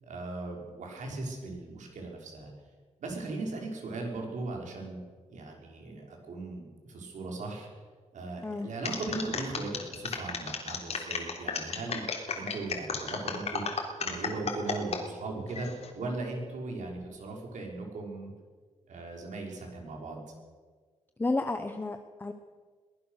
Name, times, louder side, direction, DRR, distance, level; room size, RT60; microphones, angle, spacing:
voice 1, 0.0-2.5 3.0-5.0 5.3-7.7 8.1-12.0 12.3-13.6 14.0-15.7 15.9-18.3 18.9-20.2, right 3 dB, 75° right, 0 dB, 5.4 m, -38 dB
voice 2, 8.4-8.7 21.2-22.3, left 2 dB, 15° left, 6 dB, 0.9 m, -31 dB
sound 1, 8.8-15.0 15.5-15.9, left 5 dB, 55° left, 3.4 m, -34 dB
23.0 x 19.0 x 6.6 m, 1.5 s
wide cardioid pair, 170°, 13 cm